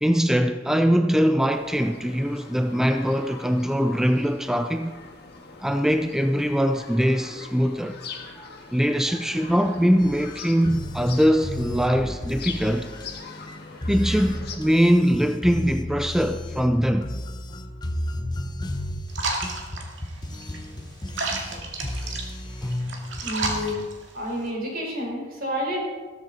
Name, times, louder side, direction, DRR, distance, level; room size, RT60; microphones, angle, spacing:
voice 1, 0.0-5.0 5.6-8.0 8.7-12.9 13.9-17.1 22.1-22.2 22.6-22.7, equal, ahead, 0.4 m, -22 dB
sound 1, 1.5-14.6, left 4 dB, 50° left, 1.9 m, -42 dB
sound 2, 10.0-23.7, left 1 dB, 20° left, 0.8 m, -33 dB
sound 3, 19.1-24.5, right 3 dB, 65° right, 2.2 m, -33 dB
voice 2, 23.2-23.8 24.1-25.8, equal, 45° right, 5.0 m, -29 dB
15.0 x 14.0 x 4.2 m
head